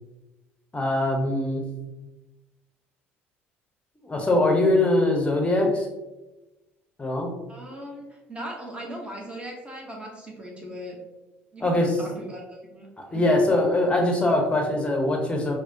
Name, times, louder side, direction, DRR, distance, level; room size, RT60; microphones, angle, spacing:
voice 1, 0.7-1.6 4.0-5.9 7.0-7.3 11.6-12.0 13.1-15.5, left 1 dB, 15° left, 1 dB, 0.8 m, -22 dB
voice 2, 7.5-11.0 11.5-13.3, right 1 dB, 15° right, -1 dB, 0.9 m, -39 dB
4.7 x 2.1 x 2.7 m, 1.1 s
figure-of-eight pair, 60°, 6 cm